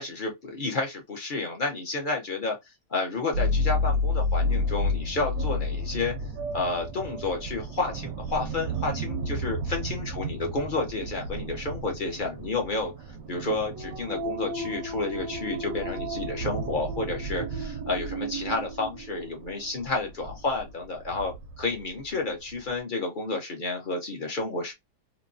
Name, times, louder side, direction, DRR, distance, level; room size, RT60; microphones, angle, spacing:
voice 1, 0.0-2.6 2.9-6.1 6.5-12.9 13.3-24.7, left 3 dB, 40° left, 0.8 m, -31 dB
sound 1, 3.3-22.0 22.5-22.7, left 1 dB, 70° right, 0.9 m, -31 dB
3.0 x 2.5 x 2.6 m
omnidirectional pair, 1.8 m